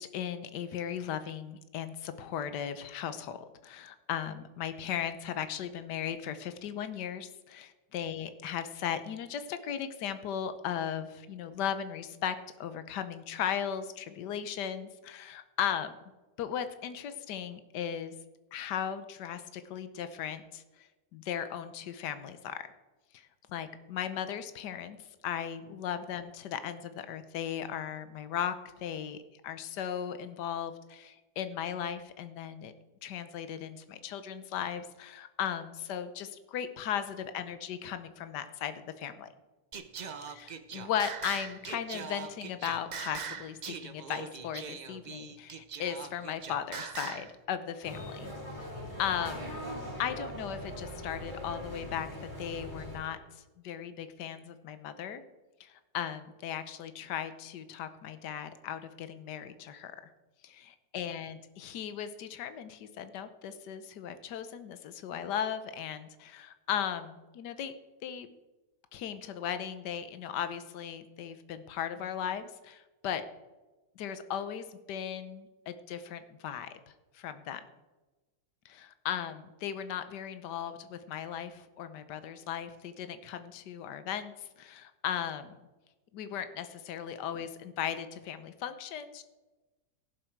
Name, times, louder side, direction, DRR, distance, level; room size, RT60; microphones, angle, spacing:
voice 1, 0.0-15.9 16.4-18.1 18.5-22.6 23.1-29.2 29.4-32.7 33.0-39.3 40.7-48.3 49.0-49.6 50.0-52.1 52.4-55.2 55.6-60.1 60.4-67.7 68.0-68.3 68.9-73.2 74.0-76.8 77.1-77.6 78.6-85.6 86.1-89.2, left 9 dB, 80° left, 11 dB, 1.5 m, -37 dB
Singing, 39.7-47.3, right 6 dB, 80° right, 0.4 m, -41 dB
sound 1, 47.8-53.0, equal, 25° right, 3.1 m, -41 dB
17.0 x 7.6 x 4.6 m, 1.1 s
omnidirectional pair, 1.8 m